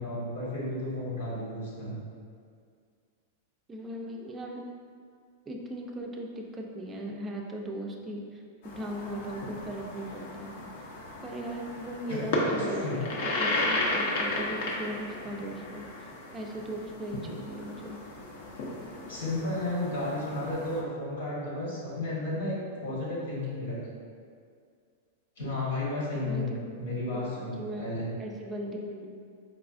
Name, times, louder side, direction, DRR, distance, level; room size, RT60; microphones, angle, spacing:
voice 1, 0.0-1.9 12.1-12.2 12.4-12.9 19.1-23.8 25.4-28.1, left 2 dB, 90° left, -6 dB, 1.3 m, -33 dB
voice 2, 3.7-4.6 5.5-8.4 8.8-10.5 11.2-12.9 13.1-18.0 26.2-26.6 27.1-27.9 28.2-29.1, right 1 dB, 20° right, 1 dB, 0.3 m, -38 dB
sound 1, 8.6-20.8, left 2 dB, 60° left, 0.5 m, -34 dB
4.1 x 2.3 x 2.4 m, 2.2 s
hypercardioid pair, 135°, 0 cm